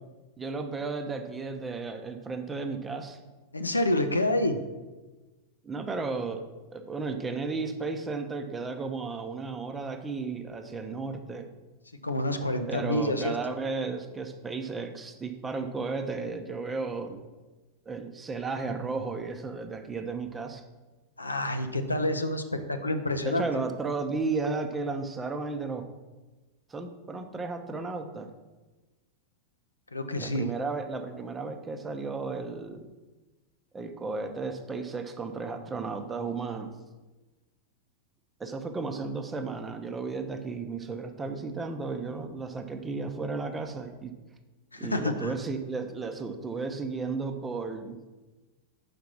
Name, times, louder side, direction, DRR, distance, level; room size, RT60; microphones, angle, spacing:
voice 1, 0.4-3.2 5.6-6.4 6.7-11.5 12.7-17.2 17.9-20.6 23.2-25.9 26.7-28.3 30.2-32.9 33.7-36.7 38.4-44.1 44.8-48.0, right 4 dB, 15° right, 6 dB, 0.7 m, -34 dB
voice 2, 3.5-4.6 12.0-13.3 21.2-23.4 29.9-30.5 44.7-45.3, left 1 dB, 80° left, 7 dB, 0.6 m, -28 dB
5.8 x 5.1 x 6.0 m, 1.2 s
figure-of-eight pair, 90°, 0 cm